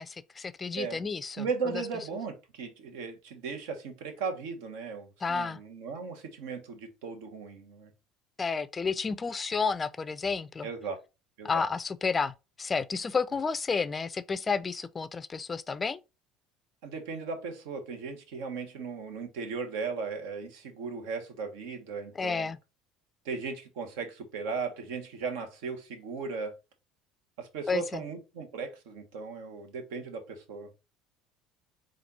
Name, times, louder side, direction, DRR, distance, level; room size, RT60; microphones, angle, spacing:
voice 1, 0.0-1.5 5.2-5.6 8.4-10.7 11.4-16.0 22.2-22.6 27.7-28.0, left 5 dB, 25° left, 0.4 m, -31 dB
voice 2, 1.4-7.9 10.6-11.0 11.4-11.6 16.8-22.5 23.2-26.6 27.4-30.7, right 5 dB, 85° right, 1.1 m, -37 dB
4.2 x 2.5 x 4.0 m
supercardioid pair, 100°, 0 cm